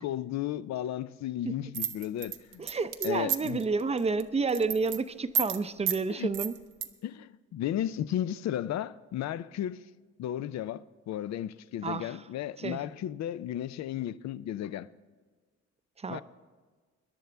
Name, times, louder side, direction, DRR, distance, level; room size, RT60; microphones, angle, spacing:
voice 1, 0.0-2.6 3.0-3.6 6.1-6.3 7.0-9.8 10.2-14.9 16.1-16.2, left 11 dB, 65° left, 0.5 m, -34 dB
sound 1, 1.7-3.6 4.0-4.2 4.5-5.0 5.3-5.6 5.9-6.0 6.3-6.9, right 8 dB, 80° right, 0.8 m, -30 dB
voice 2, 2.6-6.5 11.8-12.2 12.6-12.8 16.0-16.2, right 4 dB, 20° right, 0.6 m, -30 dB
21.5 x 10.5 x 3.4 m
cardioid pair, 90°, 30 cm